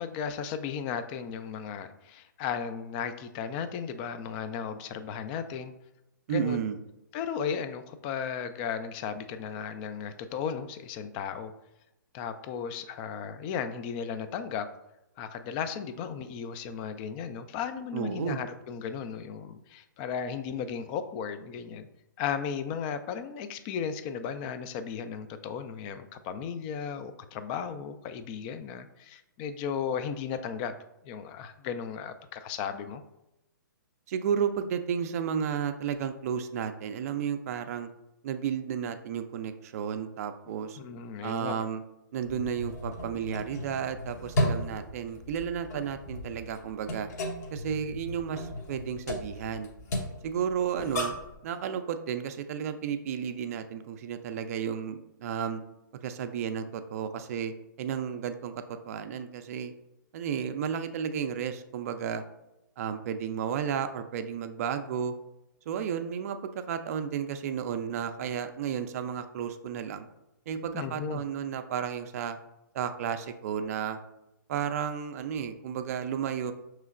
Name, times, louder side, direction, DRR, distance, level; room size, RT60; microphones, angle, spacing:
voice 1, 0.0-5.7 6.3-6.6 7.1-11.5 12.1-14.7 15.2-21.9 22.2-30.7 31.0-33.0 40.8-41.5 70.7-71.2, left 7 dB, 30° left, 10 dB, 0.4 m, -35 dB
voice 2, 6.3-6.8 17.9-18.4 34.1-37.9 38.2-40.8 41.2-41.8 42.1-47.1 47.5-49.7 50.2-51.1 51.4-55.6 56.0-59.7 60.1-62.2 62.8-65.1 65.7-70.1 70.5-72.4 72.7-74.0 74.5-76.5, right 8 dB, 50° right, 9 dB, 0.4 m, -33 dB
sound 1, 42.2-51.4, left 1 dB, 55° left, 0.9 m, -35 dB
5.5 x 3.1 x 2.4 m, 0.90 s
hypercardioid pair, 130°, 11 cm